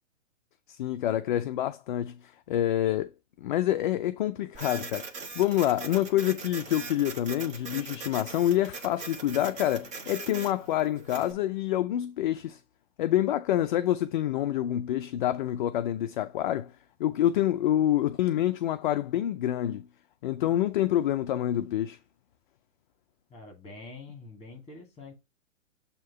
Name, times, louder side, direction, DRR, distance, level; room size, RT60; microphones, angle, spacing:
voice 1, 0.7-3.1 3.4-5.0 5.4-12.6 13.0-16.7 17.0-19.9 20.2-22.0, left 12 dB, 40° left, 0.4 m, -27 dB
Printer, 4.5-11.3, right 4 dB, 20° right, 1.0 m, -41 dB
voice 2, 23.3-25.1, left 3 dB, 15° left, 2.5 m, -45 dB
7.5 x 2.9 x 4.7 m
hypercardioid pair, 140°, 39 cm